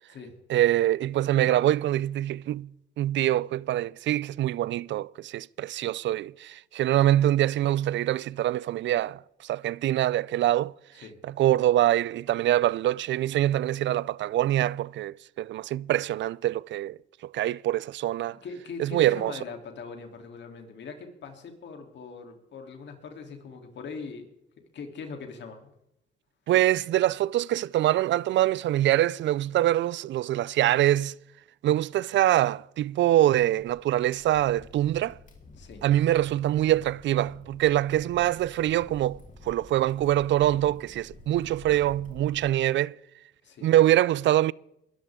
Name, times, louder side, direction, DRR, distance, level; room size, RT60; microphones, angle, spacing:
voice 1, 0.5-2.7 3.0-10.7 11.4-18.4 18.8-19.3 26.5-31.1 31.6-35.2 35.8-43.0 43.6-44.5, right 13 dB, 65° right, 0.4 m, -24 dB
voice 2, 18.4-24.3 24.7-25.7 35.6-35.8 43.4-43.7, left 5 dB, 65° left, 3.3 m, -41 dB
Crackle, 33.3-42.5, left 2 dB, 40° left, 4.2 m, -50 dB
21.5 x 14.0 x 3.7 m
cardioid pair, 90°, 20 cm